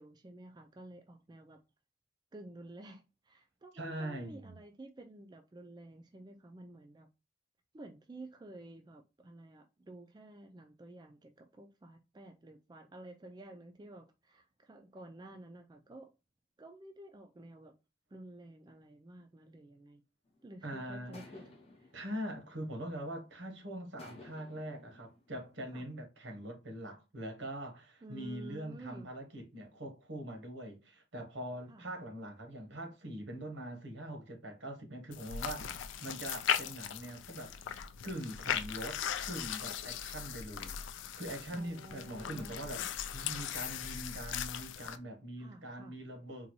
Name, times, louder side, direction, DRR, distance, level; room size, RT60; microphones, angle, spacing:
voice 1, 0.0-1.6 2.3-7.1 7.7-16.1 16.6-17.7 18.1-20.0 20.4-21.4 21.7-21.9 25.7-25.9 28.0-29.1 31.7-31.9 35.6-35.8 41.5-42.9 45.4-46.0, right 1 dB, 20° right, 0.3 m, -51 dB
voice 2, 3.7-4.5 20.6-21.2 21.9-40.8 41.2-42.8 43.1-46.5, right 1 dB, 80° right, 1.0 m, -43 dB
sound 1, 20.3-20.5 21.1-23.3 24.0-25.8, left 2 dB, 30° left, 0.7 m, -56 dB
sound 2, 35.1-45.0, left 9 dB, 80° left, 0.3 m, -38 dB
3.9 x 2.2 x 3.0 m
head